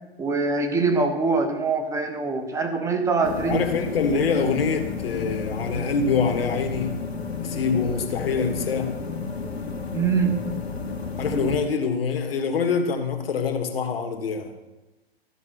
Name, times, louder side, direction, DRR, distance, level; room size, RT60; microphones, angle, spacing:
voice 1, 0.2-3.6 9.9-10.4, right 4 dB, 10° right, 5 dB, 1.0 m, -23 dB
sound 1, 3.2-11.6, left 4 dB, 80° left, 1.7 m, -31 dB
voice 2, 3.5-7.0 7.4-8.9 11.2-14.5, left 5 dB, 65° left, 5 dB, 1.7 m, -25 dB
13.5 x 5.4 x 6.5 m, 1.1 s
figure-of-eight pair, 120°, 31 cm